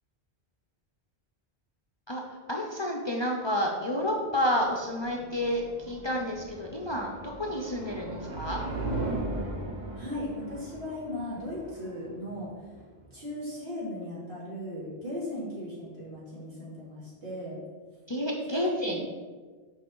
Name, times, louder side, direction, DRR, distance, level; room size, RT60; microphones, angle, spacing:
voice 1, 2.1-8.6 18.1-19.0, equal, 30° left, 0 dB, 0.6 m, -30 dB
sound 1, 4.4-13.3, right 2 dB, 45° right, 1.0 m, -38 dB
voice 2, 10.0-12.7 13.1-17.6 18.5-19.0, left 1 dB, 70° right, -8 dB, 2.6 m, -37 dB
6.0 x 5.4 x 3.8 m, 1.4 s
omnidirectional pair, 1.1 m